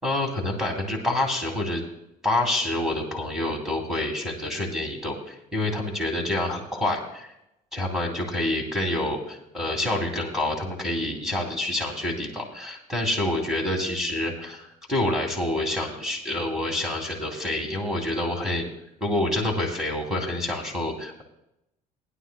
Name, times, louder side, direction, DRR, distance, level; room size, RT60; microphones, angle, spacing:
voice 1, 0.0-1.8 2.2-7.3 7.7-18.7 19.0-21.2, left 1 dB, 5° right, -1 dB, 2.6 m, -27 dB
20.0 x 11.5 x 2.2 m, 0.85 s
cardioid pair, 150°, 14 cm